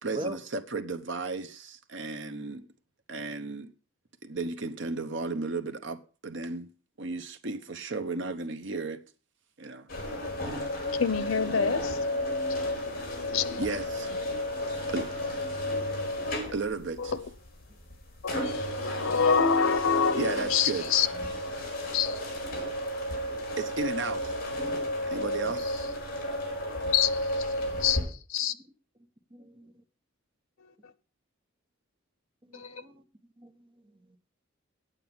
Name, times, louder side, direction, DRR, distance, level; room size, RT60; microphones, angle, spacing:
voice 1, 0.0-2.7 3.1-3.7 4.2-6.7 7.0-9.1 9.6-9.9 13.6-14.1 14.9-15.1 16.5-17.1 20.1-20.9 22.6-22.7 23.6-24.4 25.1-25.9, right 3 dB, 65° right, 1.0 m, -34 dB
sound 1, 9.9-28.0, left 1 dB, 45° left, 4.4 m, -33 dB
voice 2, 11.0-12.1 12.4-13.7 17.0-17.2 18.2-21.1 21.9-22.2 26.9-27.5 27.8-28.5 32.5-32.8, left 6 dB, 85° left, 0.8 m, -27 dB
voice 3, 29.3-29.7 32.4-33.0 33.4-34.2, right 1 dB, 25° right, 1.2 m, -41 dB
9.1 x 8.4 x 6.0 m
head